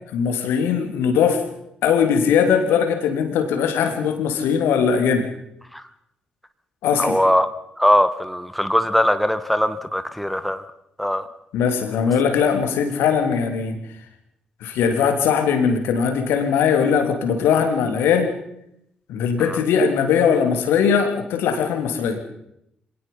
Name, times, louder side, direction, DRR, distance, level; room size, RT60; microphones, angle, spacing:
voice 1, 0.1-1.4 1.8-5.3 6.8-7.2 11.5-13.8 14.6-18.3 19.1-22.2, left 7 dB, 65° left, 7 dB, 3.1 m, -20 dB
voice 2, 7.0-7.5 7.8-10.6 11.0-11.2 19.5-19.6, equal, ahead, 11 dB, 1.5 m, -20 dB
26.5 x 18.5 x 5.6 m, 0.77 s
figure-of-eight pair, 40°, 4 cm